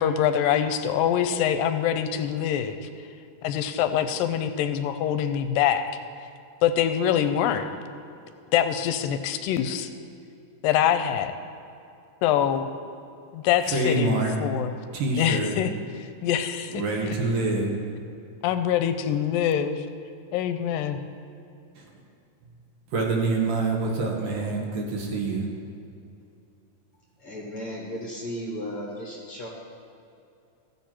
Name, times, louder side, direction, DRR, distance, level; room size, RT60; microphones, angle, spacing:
voice 1, 0.0-2.8 3.4-6.0 6.6-7.6 8.5-9.9 10.6-11.3 12.2-12.7 13.3-14.7 15.2-15.7 16.2-17.1 18.4-19.9 20.3-21.0, left 9 dB, 85° left, 9 dB, 2.2 m, -24 dB
voice 2, 13.6-14.3 14.9-15.6 16.7-17.7 21.8-21.9 22.9-25.5, right 2 dB, 70° right, 0 dB, 2.7 m, -26 dB
voice 3, 27.2-29.5, equal, 55° left, -3 dB, 1.7 m, -35 dB
15.0 x 7.3 x 4.4 m, 2.6 s
omnidirectional pair, 4.0 m